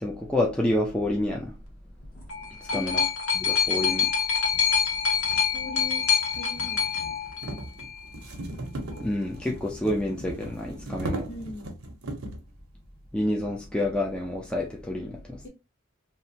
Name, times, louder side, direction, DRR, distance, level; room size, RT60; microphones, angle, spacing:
voice 1, 0.0-1.5 2.7-3.0 3.4-4.1 9.0-11.3 13.1-15.4, left 1 dB, 5° left, 0.4 m, -28 dB
sound 1, 2.0-8.0 8.9-9.0, left 6 dB, 85° left, 0.8 m, -26 dB
voice 2, 2.7-3.1 5.5-6.1 6.3-6.9 11.3-11.7 15.4-15.5, left 2 dB, 55° left, 1.0 m, -38 dB
sound 2, 3.6-3.7 4.5-12.5, right 1 dB, 70° right, 0.7 m, -38 dB
2.8 x 2.1 x 2.6 m
head